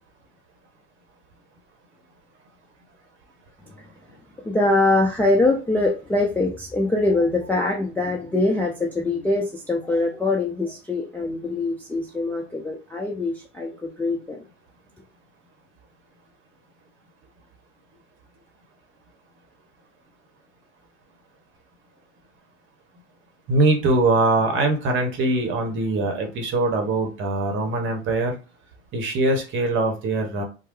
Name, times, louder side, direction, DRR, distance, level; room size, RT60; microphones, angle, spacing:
voice 1, 4.4-14.4, left 2 dB, 5° left, -3 dB, 0.4 m, -23 dB
voice 2, 23.5-28.4 28.9-30.4, right 2 dB, 35° right, 4 dB, 0.9 m, -22 dB
3.1 x 2.0 x 3.0 m, 0.31 s
hypercardioid pair, 90°, 35 cm